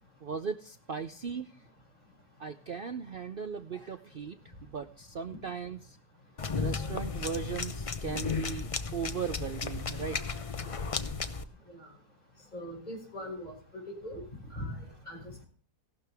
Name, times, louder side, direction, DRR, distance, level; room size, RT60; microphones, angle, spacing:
voice 1, 0.2-1.5 2.4-6.0 6.6-10.2, right 6 dB, 55° right, 8 dB, 0.6 m, -38 dB
sound 1, 6.4-11.4, left 4 dB, 45° left, 0.4 m, -34 dB
voice 2, 12.5-13.5 14.0-14.2 14.5-14.8 15.1-15.4, equal, 25° left, -1 dB, 6.2 m, -40 dB
16.0 x 12.5 x 3.5 m, 0.41 s
omnidirectional pair, 1.7 m